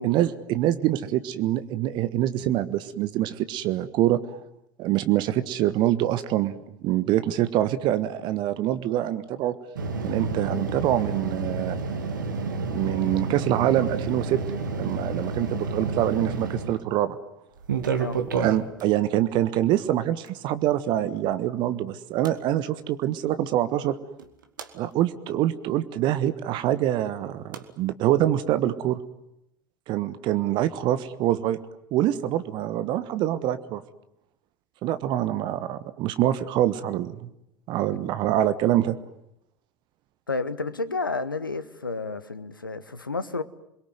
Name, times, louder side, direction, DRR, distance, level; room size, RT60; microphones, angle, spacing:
voice 1, 0.0-4.4 4.8-9.6 10.0-11.8 12.6-14.4 14.7-17.2 18.4-24.0 24.7-29.0 29.9-31.6 31.9-33.8 34.8-37.3 37.7-38.9, right 13 dB, 45° right, 1.3 m, -25 dB
sound 1, 9.8-16.8 17.6-18.8 20.3-20.4 22.2-22.3 24.2-24.7 27.5-27.6, right 4 dB, 70° right, 2.3 m, -30 dB
voice 2, 40.3-43.4, left 3 dB, 85° left, 1.3 m, -31 dB
28.5 x 22.0 x 9.4 m
figure-of-eight pair, 75°, 11 cm